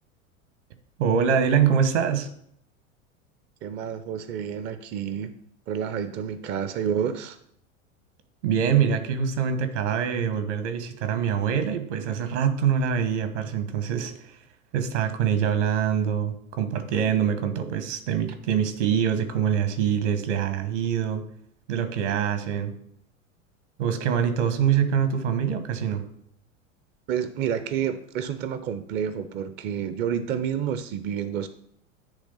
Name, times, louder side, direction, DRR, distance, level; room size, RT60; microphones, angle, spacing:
voice 1, 1.0-2.3 8.4-14.4 14.7-21.2 21.7-22.7 23.8-26.0, right 8 dB, 60° right, 9 dB, 1.3 m, -24 dB
voice 2, 3.6-5.3 5.7-7.4 27.1-31.5, right 8 dB, 25° right, 11 dB, 0.5 m, -29 dB
10.0 x 3.4 x 5.5 m, 0.69 s
figure-of-eight pair, 85°, 40 cm